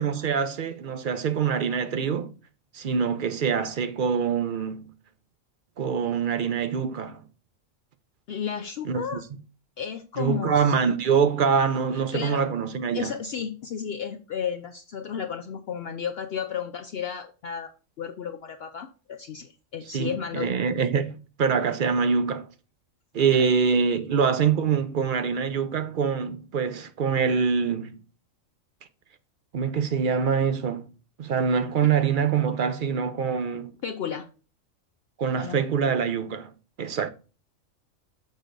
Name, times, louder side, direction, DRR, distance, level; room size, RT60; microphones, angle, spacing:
voice 1, 0.0-2.3 2.7-4.9 5.8-7.2 8.8-9.2 10.2-13.1 19.9-22.5 23.1-27.9 29.5-30.9 31.2-33.7 35.2-36.5 36.8-37.1, right 6 dB, 55° right, 0.6 m, -25 dB
voice 2, 8.3-9.2 9.8-10.7 12.1-12.4 12.9-17.7 18.0-20.5 23.3-23.5 33.8-34.3 35.4-35.6, left 7 dB, 60° left, 0.7 m, -33 dB
6.4 x 6.3 x 2.5 m
omnidirectional pair, 1.4 m